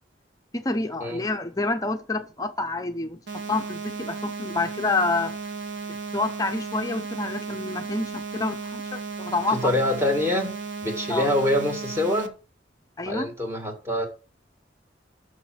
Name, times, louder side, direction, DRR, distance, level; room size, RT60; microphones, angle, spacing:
voice 1, 0.5-5.3 6.1-9.7 11.1-11.3 13.0-13.3, left 3 dB, 20° left, 0.6 m, -28 dB
sound 1, 3.3-12.3, right 4 dB, 65° right, 0.9 m, -35 dB
voice 2, 9.5-10.6 10.8-12.3 13.0-14.1, left 1 dB, 15° right, 1.7 m, -25 dB
6.4 x 5.9 x 6.0 m
head